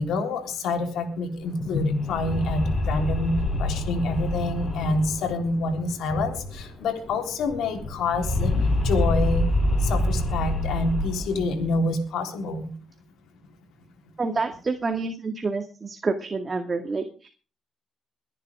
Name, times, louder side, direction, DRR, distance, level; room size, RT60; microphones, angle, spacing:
voice 1, 0.0-8.5 8.8-9.5 9.8-12.7, left 2 dB, 80° left, 4 dB, 3.7 m, -27 dB
sound 1, 1.5-6.8 7.0-7.1 7.4-11.8, left 1 dB, 35° left, 7.1 m, -26 dB
voice 2, 14.2-17.3, right 4 dB, 30° right, 6 dB, 2.0 m, -28 dB
22.5 x 10.5 x 3.7 m, 0.37 s
cardioid pair, 90°, 0 cm